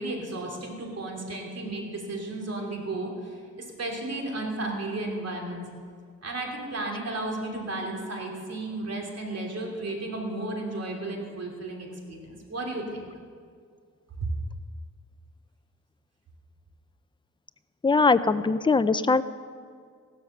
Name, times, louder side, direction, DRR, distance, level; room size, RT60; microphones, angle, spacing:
voice 1, 0.0-5.7 6.2-13.1 14.2-14.3, right 2 dB, 50° right, 0 dB, 2.9 m, -33 dB
voice 2, 17.8-19.2, left 4 dB, 15° left, 12 dB, 0.4 m, -21 dB
15.5 x 13.0 x 6.5 m, 2.1 s
wide cardioid pair, 125°, 32 cm